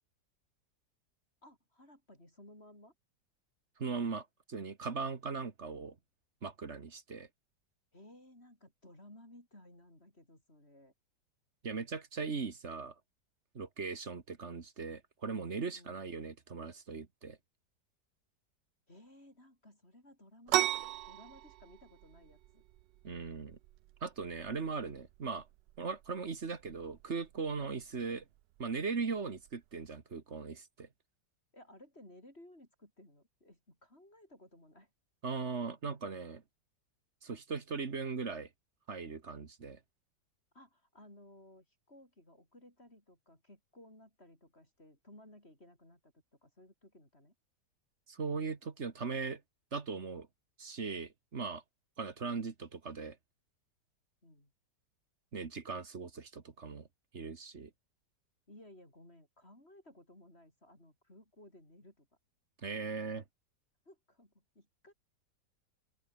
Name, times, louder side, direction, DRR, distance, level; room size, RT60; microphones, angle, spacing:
voice 1, 1.4-2.9 7.9-10.9 15.7-16.0 18.9-22.6 31.5-34.9 40.5-46.1 46.4-47.3 54.2-54.5 58.5-62.1 63.9-64.9, left 1 dB, 35° left, 7.6 m, -58 dB
voice 2, 3.8-5.9 6.4-7.3 11.6-12.9 13.5-17.4 23.0-23.6 24.0-25.5 25.8-28.2 28.6-30.9 35.2-36.4 37.2-38.5 38.9-39.8 48.1-49.4 49.7-50.3 50.6-51.6 52.0-53.2 55.3-56.9 57.1-57.7 62.6-63.2, right 4 dB, 40° right, 1.9 m, -39 dB
sound 1, 20.5-29.9, right 15 dB, 80° right, 1.3 m, -40 dB
open air
omnidirectional pair, 1.9 m